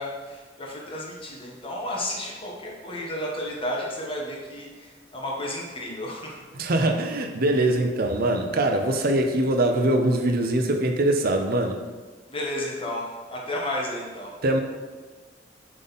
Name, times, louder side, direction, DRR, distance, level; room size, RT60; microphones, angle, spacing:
voice 1, 0.0-6.4 12.3-14.3, left 1 dB, 30° left, -3 dB, 1.3 m, -32 dB
voice 2, 6.5-11.8 14.4-14.6, right 1 dB, 55° right, 4 dB, 0.7 m, -23 dB
7.2 x 3.9 x 4.1 m, 1.4 s
head